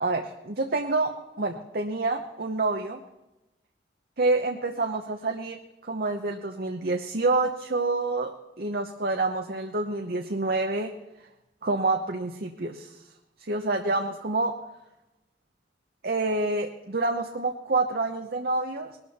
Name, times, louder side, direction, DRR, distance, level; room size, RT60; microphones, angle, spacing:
voice 1, 0.0-3.0 4.2-5.6 5.8-8.3 8.6-10.9 11.6-13.0 13.4-14.6 16.0-19.0, right 2 dB, 55° right, 4 dB, 0.9 m, -27 dB
20.5 x 12.5 x 4.3 m, 0.97 s
head